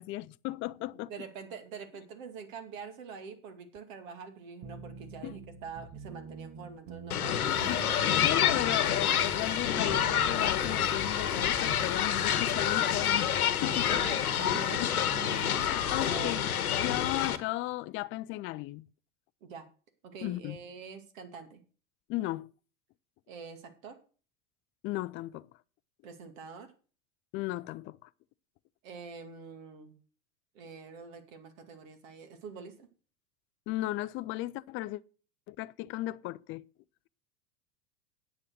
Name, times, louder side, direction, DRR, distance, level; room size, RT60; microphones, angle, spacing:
voice 1, 0.0-1.1 5.2-5.4 7.5-13.4 13.6-14.0 14.8-14.9 15.3-18.9 20.2-20.6 22.1-22.5 24.8-25.5 27.3-28.1 33.7-35.0 35.5-36.6, left 17 dB, 30° left, 0.4 m, -36 dB
voice 2, 1.1-7.8 13.9-15.0 16.0-16.4 19.4-19.7 20.0-21.6 23.3-24.0 26.0-26.7 28.8-29.9 30.5-32.9, right 5 dB, 65° right, 2.4 m, -45 dB
sound 1, 4.6-16.4, right 5 dB, 40° right, 1.5 m, -45 dB
sound 2, 7.1-17.4, left 9 dB, 85° left, 1.1 m, -28 dB
9.8 x 7.2 x 6.4 m
hypercardioid pair, 90°, 43 cm